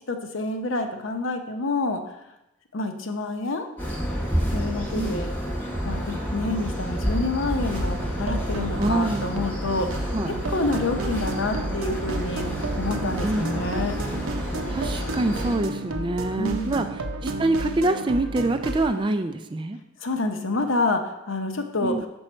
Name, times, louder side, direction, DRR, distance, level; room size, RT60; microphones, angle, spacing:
voice 1, 0.1-2.0 2.7-3.7 4.5-5.3 5.8-12.4 12.8-14.0 16.4-16.8 20.0-21.0 21.3-22.1, left 2 dB, 65° left, 6 dB, 0.8 m, -28 dB
sound 1, 3.8-15.6, equal, 10° left, 1.0 m, -29 dB
sound 2, 7.7-18.9, right 1 dB, 85° right, 0.8 m, -32 dB
voice 2, 8.8-9.2 10.1-10.3 13.2-13.4 14.7-16.9 17.2-19.8 21.8-22.0, right 2 dB, 20° right, 8 dB, 0.3 m, -25 dB
6.2 x 6.2 x 4.4 m, 0.91 s
head